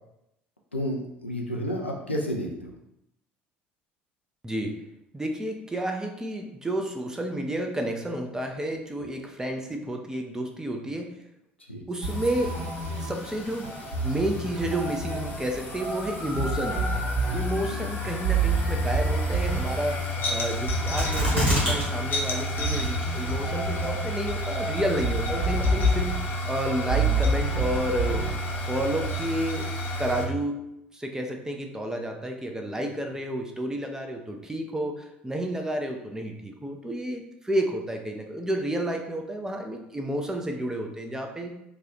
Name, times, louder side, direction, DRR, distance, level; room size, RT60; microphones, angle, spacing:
voice 1, 0.7-2.7 11.7-11.8 17.7-17.9, equal, 85° left, 0 dB, 0.5 m, -31 dB
voice 2, 4.4-4.7 5.1-11.1 11.9-12.6 13.0-13.7 14.0-16.8 17.3-28.3 28.6-29.7 30.0-30.6 30.9-41.5, right 1 dB, 10° right, 3 dB, 0.6 m, -31 dB
sound 1, 12.0-30.3, left 1 dB, 35° left, 0.8 m, -30 dB
sound 2, 12.0-29.3, right 4 dB, 60° right, 1.5 m, -31 dB
sound 3, 21.0-21.8 22.1-22.2 22.8-23.3 23.8-23.9, equal, 85° right, 1.2 m, -24 dB
3.2 x 2.4 x 3.9 m, 0.84 s
figure-of-eight pair, 60°, 6 cm